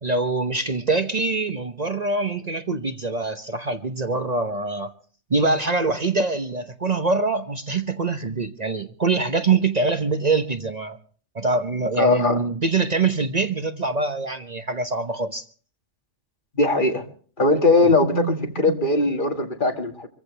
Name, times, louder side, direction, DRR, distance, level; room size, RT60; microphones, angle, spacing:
voice 1, 0.0-4.9 5.3-11.0 11.3-15.4 17.8-18.7, right 3 dB, 40° right, 1.0 m, -24 dB
voice 2, 12.0-12.4 16.6-17.0 17.4-20.1, left 2 dB, 45° left, 2.1 m, -20 dB
26.0 x 15.0 x 3.3 m
omnidirectional pair, 1.2 m